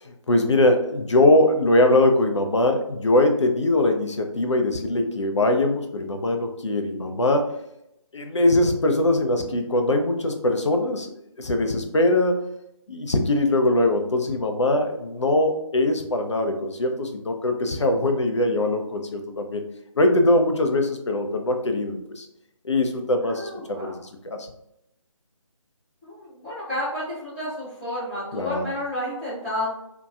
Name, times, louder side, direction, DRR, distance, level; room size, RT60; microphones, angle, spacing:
voice 1, 0.0-7.5 8.1-12.4 12.9-19.6 20.0-22.3 22.6-24.5 28.3-28.7, left 1 dB, 60° left, 5 dB, 0.4 m, -22 dB
voice 2, 23.2-24.0 26.0-29.7, left 1 dB, 5° right, -16 dB, 0.8 m, -31 dB
2.7 x 2.2 x 2.3 m, 0.80 s
figure-of-eight pair, 155°, 17 cm